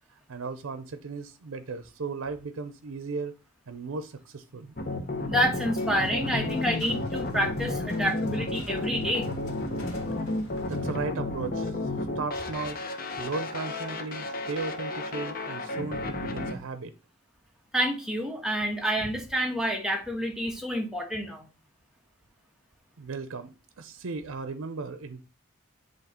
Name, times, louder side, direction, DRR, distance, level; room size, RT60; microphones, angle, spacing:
voice 1, 0.3-3.3 3.7-4.8 8.7-8.9 10.7-11.9 12.2-12.8 13.2-16.9 23.0-25.2, right 4 dB, 85° right, 11 dB, 0.6 m, -36 dB
sound 1, 4.8-16.5, left 2 dB, 45° left, 0.9 m, -32 dB
voice 2, 5.3-9.3 17.7-21.4, equal, ahead, 1 dB, 1.3 m, -28 dB
sound 2, 5.7-11.1, left 1 dB, 85° left, 1.8 m, -45 dB
8.2 x 3.1 x 4.3 m, 0.30 s
head